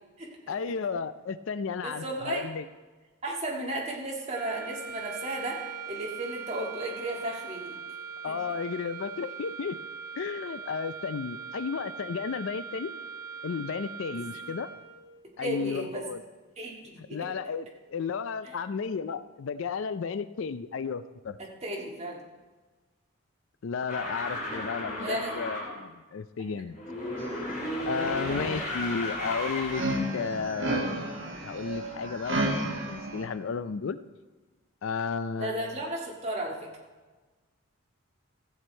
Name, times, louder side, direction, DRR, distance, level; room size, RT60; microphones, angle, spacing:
voice 1, 0.5-2.7 8.2-9.8 10.2-12.9 13.4-14.7 15.4-16.2 17.0-21.4 23.6-26.8 27.8-29.8 30.1-31.1 31.4-34.0 34.8-35.7, left 5 dB, 65° left, 14 dB, 0.4 m, -33 dB
voice 2, 1.8-2.4 3.2-7.8 8.2-8.3 14.1-14.3 15.4-16.0 16.6-17.3 21.4-22.2 25.0-25.4 26.4-26.6 35.4-36.6, right 1 dB, 30° right, -2 dB, 1.8 m, -34 dB
sound 1, 4.3-15.2, right 5 dB, 10° right, 1.1 m, -41 dB
sound 2, 23.9-25.7 26.7-30.1, left 1 dB, 40° left, 2.7 m, -34 dB
sound 3, 27.2-27.6 27.9-33.3, right 1 dB, 60° right, 1.8 m, -33 dB
14.5 x 8.1 x 4.4 m, 1.3 s
head